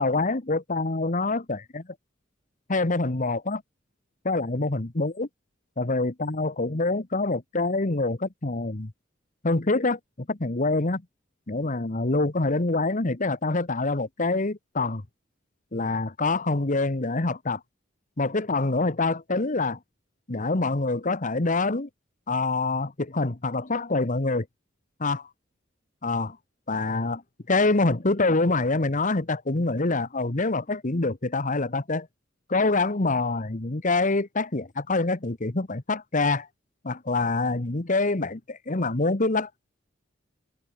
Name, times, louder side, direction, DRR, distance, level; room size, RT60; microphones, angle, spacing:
voice 1, 0.0-1.8 2.7-3.6 4.2-5.3 5.8-8.9 9.4-11.0 11.5-15.0 15.7-17.6 18.2-19.8 20.3-21.9 22.3-24.4 25.0-25.3 26.0-26.4 26.7-27.2 27.5-32.1 32.5-36.5 36.8-39.5, left 3 dB, 45° left, 1.3 m, -25 dB
head